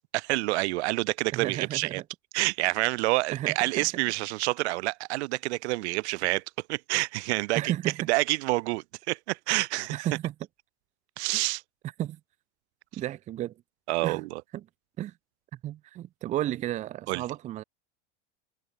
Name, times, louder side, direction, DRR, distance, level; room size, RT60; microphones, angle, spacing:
voice 1, 0.0-2.0 2.3-6.4 6.7-7.7 8.1-10.1 11.2-11.6 13.9-14.4 17.1-17.2, right 21 dB, 75° right, 0.6 m, -28 dB
voice 2, 1.3-2.0 3.3-3.9 7.6-8.1 9.9-10.3 12.0-12.2 12.9-13.5 14.0-14.2 14.5-14.6 15.0-15.1 15.5-17.6, right 13 dB, 20° right, 0.5 m, -33 dB
supercardioid pair, 150°, 34 cm